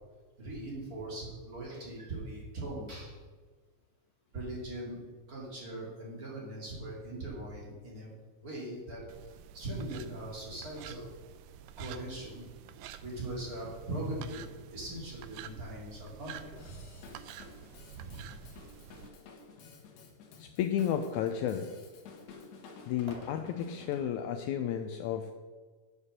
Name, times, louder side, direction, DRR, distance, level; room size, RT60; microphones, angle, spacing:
voice 1, 0.4-3.2 4.3-5.0 5.3-8.1 8.4-11.1 11.8-12.5 13.0-16.8 17.9-18.3, right 1 dB, 30° right, -3 dB, 2.3 m, -40 dB
sound 1, 9.1-19.1, right 10 dB, 85° right, 1.7 m, -50 dB
Drum kit / Drum, 16.6-24.1, left 4 dB, 65° left, 2.2 m, -52 dB
voice 2, 20.4-21.7 22.9-25.3, left 9 dB, 85° left, 7 dB, 1.7 m, -32 dB
8.2 x 7.2 x 6.6 m, 1.4 s
omnidirectional pair, 3.9 m